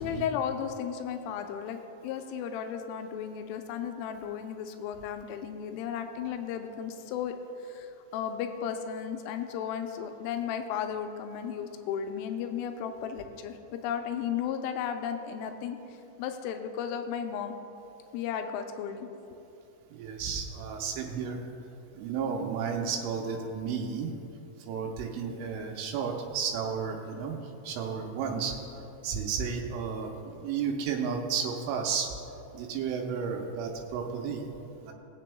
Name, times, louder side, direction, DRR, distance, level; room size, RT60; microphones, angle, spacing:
voice 1, 0.0-7.4 7.6-15.8 16.2-17.5 18.1-19.1, left 8 dB, 85° left, 6 dB, 3.1 m, -34 dB
voice 2, 19.9-21.4 21.9-24.1 24.7-27.4 27.6-28.6 29.0-32.1 32.5-34.4 34.8-34.9, right 6 dB, 90° right, 1 dB, 3.2 m, -32 dB
22.0 x 7.6 x 2.2 m, 2.8 s
omnidirectional pair, 5.6 m